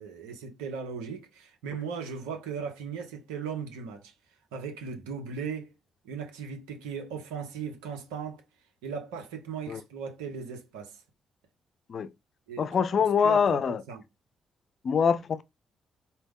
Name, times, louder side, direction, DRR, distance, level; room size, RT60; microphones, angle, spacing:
voice 1, 0.0-4.1 4.5-5.7 6.0-8.4 8.8-11.0 12.5-14.0, right 6 dB, 90° right, 0.8 m, -38 dB
voice 2, 12.6-13.8 14.8-15.4, left 6 dB, 60° left, 0.4 m, -24 dB
4.2 x 2.1 x 3.6 m
supercardioid pair, 50°, 0 cm